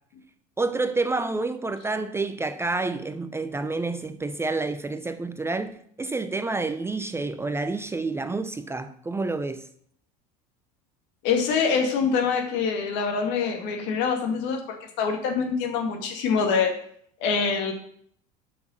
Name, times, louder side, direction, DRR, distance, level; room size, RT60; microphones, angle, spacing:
voice 1, 0.6-9.6, right 3 dB, 15° right, 0.6 m, -29 dB
voice 2, 11.2-16.7 17.2-17.7, left 5 dB, 65° left, 2.1 m, -25 dB
7.9 x 6.0 x 6.4 m
supercardioid pair, 105°, 20 cm